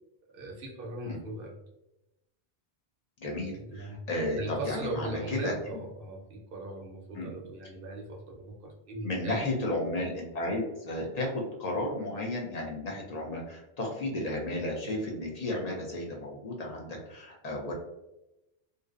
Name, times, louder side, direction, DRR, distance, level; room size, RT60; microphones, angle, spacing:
voice 1, 0.3-1.5 3.5-4.0 4.4-9.4, right 2 dB, 65° right, 1 dB, 0.7 m, -39 dB
voice 2, 3.2-5.8 7.1-7.3 9.0-17.7, left 1 dB, 50° left, -1 dB, 0.5 m, -33 dB
2.5 x 2.0 x 2.3 m, 0.92 s
omnidirectional pair, 1.1 m